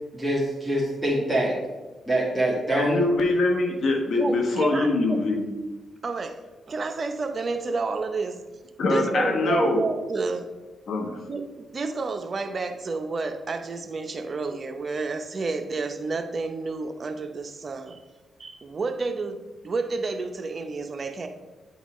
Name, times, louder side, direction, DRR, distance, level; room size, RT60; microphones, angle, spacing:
voice 1, 0.1-1.6 2.1-3.0, right 1 dB, ahead, -6 dB, 1.6 m, -24 dB
voice 2, 2.8-5.5 8.8-9.8 10.9-11.2, left 2 dB, 65° left, 3 dB, 1.1 m, -23 dB
voice 3, 4.2-5.2 6.0-6.4 6.7-8.4 8.9-10.5 11.3-18.0 18.4-21.3, right 3 dB, 45° right, 7 dB, 0.6 m, -30 dB
8.8 x 4.0 x 3.1 m, 1.2 s
cardioid pair, 65°, 0 cm